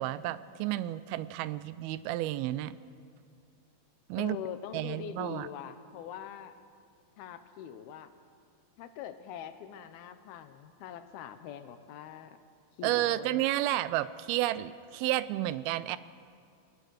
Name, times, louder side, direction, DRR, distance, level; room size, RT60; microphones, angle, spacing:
voice 1, 0.0-2.8 4.1-4.4 4.7-5.5 12.8-16.0, right 15 dB, 85° right, 16 dB, 2.5 m, -31 dB
voice 2, 4.2-6.5 7.2-8.1 8.8-12.4 12.8-13.4, left 9 dB, 90° left, 10 dB, 2.9 m, -43 dB
20.5 x 20.0 x 6.4 m, 2.4 s
omnidirectional pair, 4.3 m